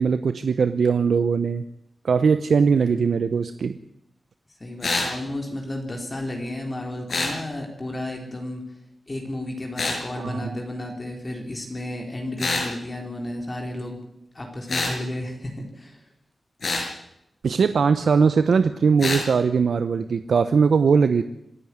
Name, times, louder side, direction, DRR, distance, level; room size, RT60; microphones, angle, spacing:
voice 1, 0.0-1.6 2.0-3.8 10.2-10.6 17.4-21.2, right 5 dB, 80° right, 11 dB, 0.8 m, -20 dB
voice 2, 4.6-8.6 9.1-14.0 14.3-16.0, left 1 dB, 25° left, 2 dB, 3.6 m, -32 dB
sound 1, 4.8-5.1 7.1-7.4 9.8-10.0 12.4-12.7 14.7-15.0 16.6-16.9 19.0-19.2, left 3 dB, 60° left, 6.0 m, -25 dB
26.0 x 11.0 x 9.6 m, 0.81 s
wide cardioid pair, 115°, 0 cm